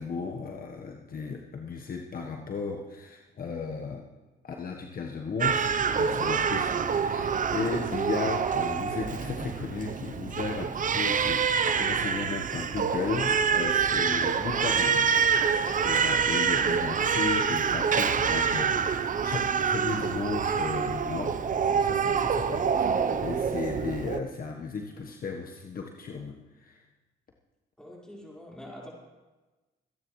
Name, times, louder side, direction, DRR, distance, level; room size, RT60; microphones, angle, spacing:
voice 1, 0.0-4.0 4.4-11.5 11.7-15.1 15.8-21.4 21.7-22.9 23.2-26.8, left 4 dB, 45° left, 1 dB, 1.2 m, -35 dB
Crying sobbing, 5.4-24.2, right 6 dB, 40° right, 0.7 m, -26 dB
voice 2, 27.8-28.9, equal, 5° left, -4 dB, 4.7 m, -45 dB
26.0 x 10.0 x 3.2 m, 1.2 s
cardioid pair, 90°, 20 cm